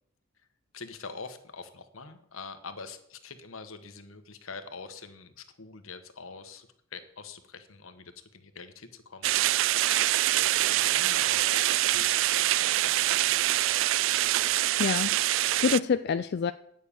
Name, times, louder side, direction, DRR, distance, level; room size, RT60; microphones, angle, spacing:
voice 1, 0.7-13.5 13.8-14.3, left 4 dB, 80° left, 9 dB, 1.2 m, -45 dB
sound 1, 9.2-15.8, right 15 dB, 65° right, 0.3 m, -25 dB
voice 2, 14.8-16.5, left 6 dB, 55° left, 10 dB, 0.4 m, -27 dB
9.4 x 6.5 x 8.5 m, 0.73 s
head